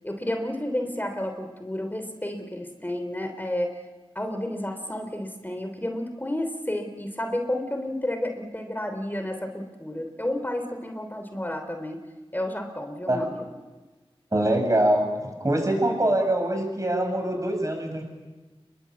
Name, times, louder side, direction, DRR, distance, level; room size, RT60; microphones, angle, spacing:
voice 1, 0.0-3.7 4.1-12.0 12.3-13.5, left 1 dB, 20° left, 6 dB, 3.2 m, -31 dB
voice 2, 14.3-15.1 15.4-18.0, right 1 dB, 30° right, 4 dB, 7.9 m, -23 dB
29.0 x 22.0 x 8.6 m, 1.2 s
wide cardioid pair, 65°, 10 cm